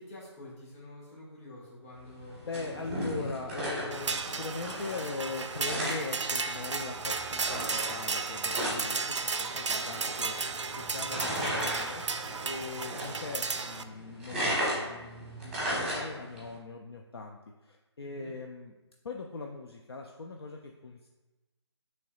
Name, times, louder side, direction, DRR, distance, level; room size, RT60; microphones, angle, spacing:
voice 1, 0.0-3.2 12.2-12.6 18.0-18.3, left 1 dB, 30° left, -6 dB, 1.5 m, -48 dB
sound 1, 2.1-16.5, equal, ahead, 1.1 m, -37 dB
voice 2, 2.5-18.7 19.0-21.1, left 3 dB, 60° left, 2 dB, 0.4 m, -40 dB
sound 2, 3.9-13.8, right 4 dB, 80° right, 0.4 m, -34 dB
6.9 x 3.2 x 2.4 m, 1.1 s
figure-of-eight pair, 155°, 15 cm